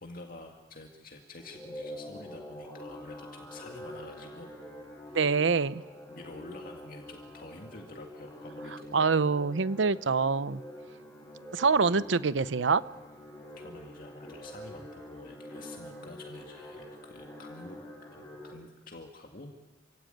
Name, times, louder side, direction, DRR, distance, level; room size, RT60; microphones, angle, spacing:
voice 1, 0.0-4.5 5.1-5.3 6.1-9.0 13.6-17.8 18.1-19.5, left 2 dB, 50° left, 2 dB, 2.0 m, -48 dB
sound 1, 1.4-18.5, left 1 dB, 15° left, 5.5 m, -46 dB
voice 2, 5.1-5.8 8.9-10.6 11.5-12.8, right 4 dB, 75° right, 16 dB, 0.7 m, -25 dB
27.0 x 16.5 x 9.3 m, 1.2 s
head